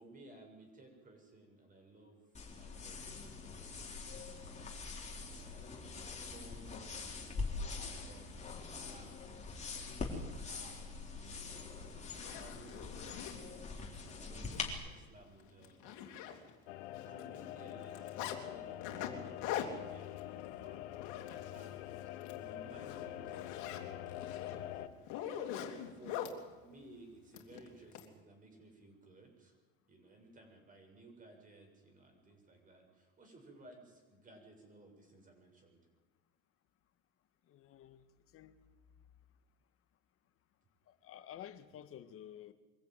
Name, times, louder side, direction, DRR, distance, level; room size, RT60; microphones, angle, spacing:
voice 1, 0.0-4.8 5.4-5.9 6.1-7.3 7.6-9.2 9.8-16.4 17.0-20.9 21.5-21.9 22.3-24.8 25.9-29.6 29.9-35.8, right 2 dB, 25° right, 6.8 m, -58 dB
sound 1, 2.3-14.7, left 4 dB, 20° left, 4.2 m, -44 dB
Zipper (clothing), 11.5-11.6 12.1-13.4 14.0-14.1 14.5-14.6 14.9-15.1 15.4-16.7 17.0-18.4 18.8-21.8 22.1-22.4 22.7-26.4 27.3-28.1, left 10 dB, 65° left, 3.2 m, -43 dB
sound 2, 16.7-24.9, left 13 dB, 80° left, 1.4 m, -45 dB
voice 2, 37.5-38.0 38.3-38.6 40.9-42.5, left 10 dB, 40° left, 1.8 m, -51 dB
24.0 x 14.5 x 9.3 m
supercardioid pair, 115°, 33 cm